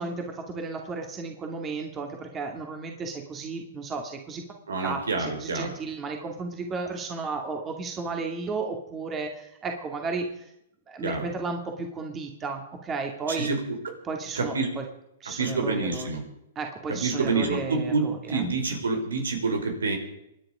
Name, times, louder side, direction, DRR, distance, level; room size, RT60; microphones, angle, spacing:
voice 1, 0.0-4.4 4.8-10.5 10.9-13.5 14.0-14.8 15.2-16.1 16.6-18.4 18.7-18.8, right 4 dB, 20° right, 3 dB, 2.5 m, -33 dB
voice 2, 4.7-5.7 11.0-11.2 13.3-13.6 14.3-14.7 15.2-16.2 16.9-20.0, right 3 dB, 90° right, 4 dB, 4.8 m, -27 dB
26.5 x 10.0 x 5.1 m, 0.80 s
hypercardioid pair, 125°, 0 cm